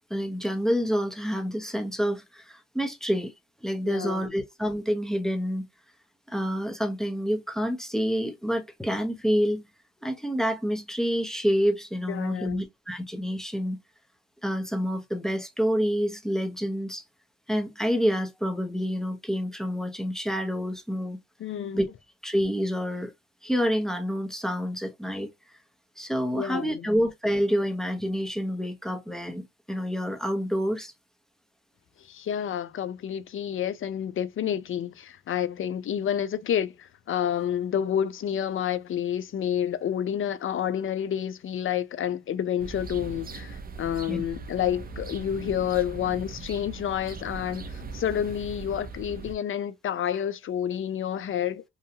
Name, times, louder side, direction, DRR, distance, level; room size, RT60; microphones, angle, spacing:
voice 1, 0.1-3.3 3.6-5.6 6.3-9.7 10.0-13.8 14.4-17.0 17.5-21.2 21.7-21.9 22.2-23.1 23.4-25.3 26.0-30.9 44.1-44.2, equal, ahead, 0.7 m, -28 dB
voice 2, 3.8-4.3 12.1-12.7 21.4-21.8 26.3-26.9 32.0-51.6, left 9 dB, 45° left, 0.5 m, -29 dB
sound 1, 42.6-49.4, right 4 dB, 30° right, 0.5 m, -40 dB
2.8 x 2.3 x 2.7 m
cardioid pair, 90°, 30 cm